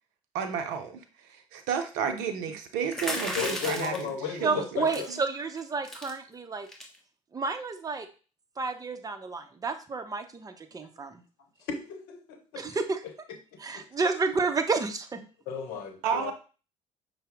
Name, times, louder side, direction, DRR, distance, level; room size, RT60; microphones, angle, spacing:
voice 1, 0.3-4.8 16.0-16.3, right 7 dB, 75° right, 6 dB, 0.5 m, -32 dB
sound 1, 2.9-4.1 4.9-5.2 5.5-5.6 5.8-6.1 6.7-7.0, left 1 dB, 5° left, 1.2 m, -34 dB
voice 2, 3.4-5.1 11.7-12.6 13.5-13.9 15.5-16.3, left 6 dB, 70° left, 6 dB, 0.8 m, -35 dB
voice 3, 4.4-6.7 7.3-8.1 8.6-11.2 12.6-13.0 13.6-15.2, right 4 dB, 25° right, 7 dB, 0.6 m, -30 dB
5.5 x 2.0 x 3.5 m, 0.35 s
hypercardioid pair, 55°, 16 cm